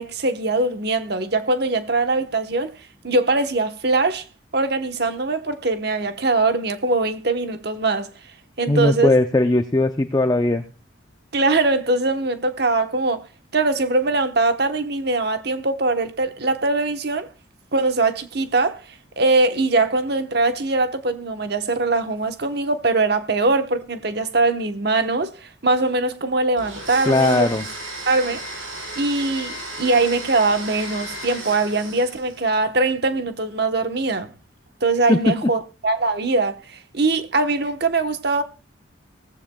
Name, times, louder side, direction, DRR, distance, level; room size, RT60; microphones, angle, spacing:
voice 1, 0.0-2.7 3.0-4.2 4.5-8.1 8.6-9.1 11.3-13.2 13.5-17.3 17.7-18.8 19.2-27.5 28.1-28.4 29.0-34.3 34.8-38.4, right 3 dB, 55° right, 1.1 m, -22 dB
voice 2, 8.7-10.6 27.1-27.7 35.1-35.3, left 2 dB, 20° left, 0.5 m, -18 dB
Domestic sounds home sounds, 26.6-32.4, right 1 dB, 80° right, 6.8 m, -34 dB
18.5 x 14.5 x 2.3 m
head